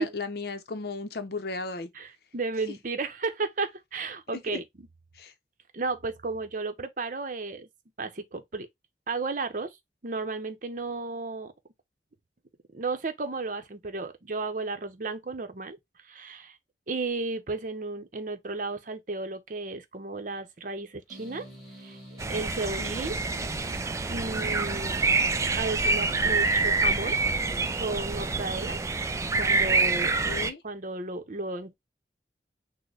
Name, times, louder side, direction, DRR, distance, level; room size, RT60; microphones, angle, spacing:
voice 1, 0.0-1.9 4.3-4.4 5.2-5.3 22.8-23.1 30.0-30.6, left 3 dB, 60° left, 0.6 m, -35 dB
voice 2, 1.9-4.6 5.7-7.7 8.0-8.7 9.1-9.8 10.0-11.5 12.7-15.8 16.0-16.6 16.9-21.5 21.8-23.2 24.1-25.1 25.5-27.2 27.8-28.8 29.3-30.2 30.6-31.7, right 3 dB, 50° right, 0.7 m, -33 dB
sound 1, 21.1-28.5, right 1 dB, ahead, 2.1 m, -49 dB
sound 2, 22.2-30.5, right 3 dB, 15° right, 0.3 m, -26 dB
6.4 x 2.1 x 3.3 m
head